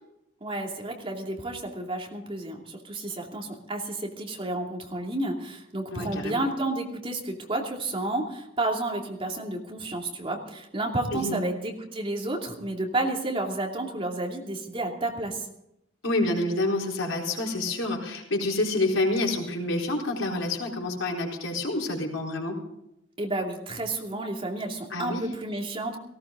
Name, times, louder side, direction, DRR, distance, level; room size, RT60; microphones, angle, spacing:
voice 1, 0.4-15.5 23.2-26.0, right 2 dB, 30° right, 0 dB, 2.7 m, -31 dB
voice 2, 5.9-6.4 11.1-11.4 16.0-22.6 24.9-25.2, left 2 dB, 80° left, -1 dB, 4.2 m, -28 dB
18.0 x 17.0 x 3.8 m, 0.81 s
head